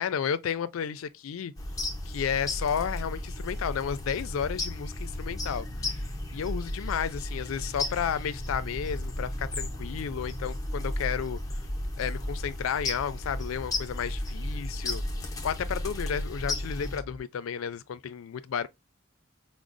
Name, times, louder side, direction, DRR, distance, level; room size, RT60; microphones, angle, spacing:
voice 1, 0.0-1.5 2.1-6.0 6.3-11.4 12.0-15.0 15.4-18.7, left 7 dB, 90° left, 0.4 m, -32 dB
sound 1, 1.6-17.0, left 1 dB, 15° left, 0.6 m, -35 dB
sound 2, 5.3-17.2, equal, 35° right, 1.1 m, -40 dB
4.8 x 2.0 x 2.5 m
head